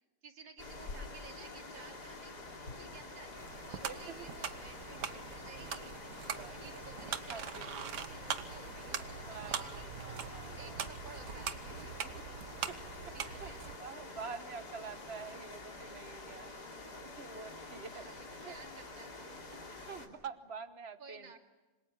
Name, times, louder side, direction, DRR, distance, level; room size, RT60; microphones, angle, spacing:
voice 1, 0.2-12.1 13.1-13.6 17.9-19.4 21.0-21.4, right 4 dB, 85° right, 3 dB, 3.2 m, -55 dB
sound 1, 0.6-20.1, left 3 dB, 60° left, 3.5 m, -47 dB
sound 2, 3.3-13.8, right 8 dB, 65° right, 1.7 m, -42 dB
voice 2, 3.8-4.3 6.3-6.6 7.3-8.0 9.0-10.8 12.0-12.1 12.7-13.5 13.8-16.7 17.0-18.5 19.9-21.3, right 5 dB, 40° right, 10 dB, 1.3 m, -47 dB
27.0 x 26.0 x 7.3 m, 1.2 s
omnidirectional pair, 2.0 m